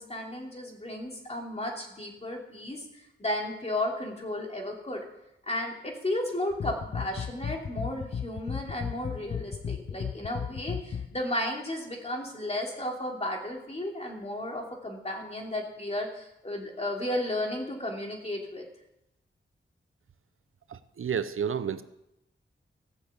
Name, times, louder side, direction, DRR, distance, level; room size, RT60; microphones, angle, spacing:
voice 1, 0.0-5.0 5.5-18.6, left 1 dB, 30° left, 0 dB, 3.0 m, -34 dB
sound 1, 6.5-11.2, left 7 dB, 55° left, 0.6 m, -35 dB
voice 2, 20.7-21.8, right 7 dB, 80° right, 12 dB, 0.7 m, -31 dB
15.0 x 7.3 x 8.1 m, 0.86 s
wide cardioid pair, 90°, 21 cm